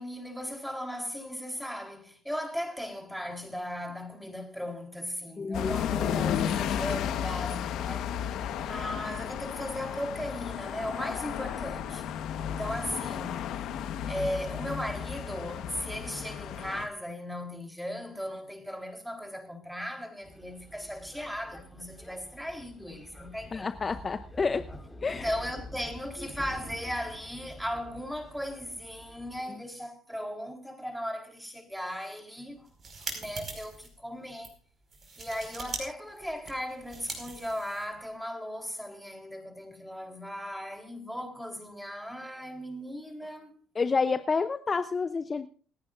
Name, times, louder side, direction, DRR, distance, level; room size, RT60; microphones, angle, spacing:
voice 1, 0.0-8.3 8.6-13.5 14.1-23.8 25.0-32.7 33.0-34.6 35.2-43.5, equal, ahead, 3.6 m, -37 dB
voice 2, 5.4-5.9 23.5-24.7 25.0-25.3 43.8-45.5, left 4 dB, 30° left, 0.7 m, -29 dB
sound 1, 5.5-16.9, left 9 dB, 70° left, 1.3 m, -33 dB
sound 2, 20.2-29.4, left 1 dB, 15° left, 4.5 m, -47 dB
sound 3, 32.6-33.9 34.3-34.5 34.9-35.8 36.1-38.1, right 4 dB, 40° right, 5.2 m, -41 dB
28.0 x 9.4 x 2.6 m
supercardioid pair, 75°, 0 cm